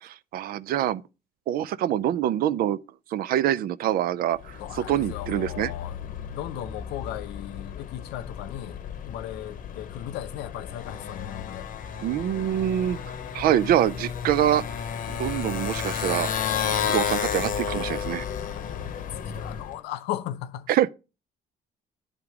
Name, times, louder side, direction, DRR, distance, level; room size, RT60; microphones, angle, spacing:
voice 1, 0.0-1.0 1.5-2.8 3.1-4.6 4.9-5.7 12.0-13.0 13.3-14.6 15.1-16.3 16.8-18.2 20.7-20.9, right 11 dB, 60° right, 0.4 m, -25 dB
Motorcycle, 4.4-19.8, left 7 dB, 55° left, 0.9 m, -32 dB
voice 2, 4.6-11.7 18.5-18.6 19.0-19.1 19.3-20.7, left 12 dB, 85° left, 0.7 m, -37 dB
10.5 x 3.6 x 4.7 m
cardioid pair, 110°, 17 cm